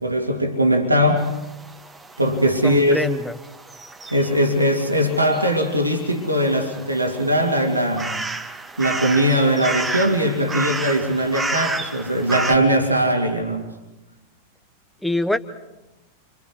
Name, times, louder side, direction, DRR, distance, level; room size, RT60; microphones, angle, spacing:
voice 1, 0.0-1.3 2.2-3.1 4.1-8.1 8.8-13.7, equal, 85° right, 2 dB, 2.6 m, -20 dB
sound 1, 1.2-12.5, right 3 dB, 15° right, 1.8 m, -32 dB
voice 2, 2.6-3.3 15.0-15.4, left 1 dB, ahead, 8 dB, 1.1 m, -24 dB
30.0 x 26.0 x 4.8 m, 0.98 s
figure-of-eight pair, 90°, 0 cm